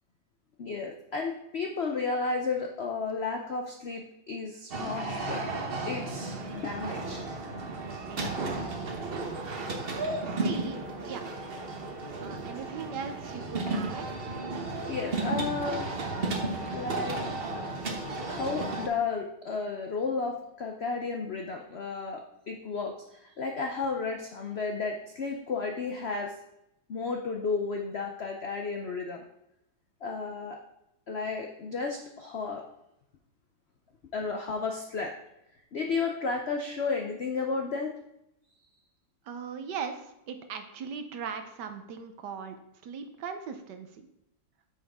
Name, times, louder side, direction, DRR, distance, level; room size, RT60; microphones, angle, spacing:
voice 1, 0.6-5.5 5.9-7.2 14.9-15.9 16.7-17.2 18.3-26.3 26.9-29.2 30.0-30.6 31.1-32.6 34.1-35.1 35.7-37.9, left 4 dB, 70° left, 2 dB, 0.6 m, -33 dB
sound 1, 4.7-18.9, right 2 dB, 40° right, 0.9 m, -34 dB
voice 2, 8.1-9.1 10.3-11.3 12.2-14.2 39.2-42.6 42.8-44.1, right 6 dB, 70° right, 7 dB, 1.3 m, -39 dB
8.7 x 6.2 x 3.5 m, 0.83 s
omnidirectional pair, 2.1 m